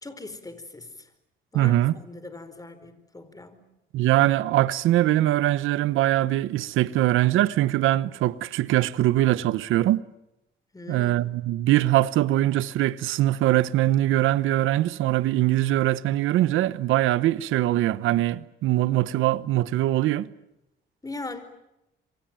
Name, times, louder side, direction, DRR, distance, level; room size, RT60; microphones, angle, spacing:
voice 1, 0.0-1.1 1.5-3.6 10.7-11.3 21.0-21.4, left 2 dB, 15° left, 4.6 m, -40 dB
voice 2, 1.5-1.9 3.9-10.0 10.9-20.3, right 14 dB, 90° right, 1.0 m, -22 dB
26.5 x 24.0 x 9.0 m
cardioid pair, 90°, 20 cm